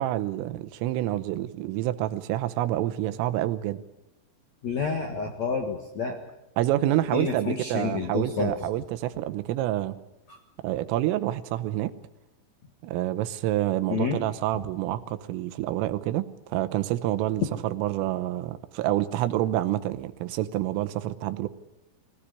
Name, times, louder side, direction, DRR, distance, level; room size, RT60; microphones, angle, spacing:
voice 1, 0.0-3.8 6.6-10.0 10.6-12.0 12.8-21.5, right 14 dB, 80° right, 11 dB, 3.5 m, -28 dB
voice 2, 4.6-6.2 7.1-8.5 10.3-10.4 13.9-14.2, left 5 dB, 60° left, 3 dB, 1.9 m, -29 dB
22.0 x 17.0 x 9.9 m, 0.94 s
omnidirectional pair, 5.8 m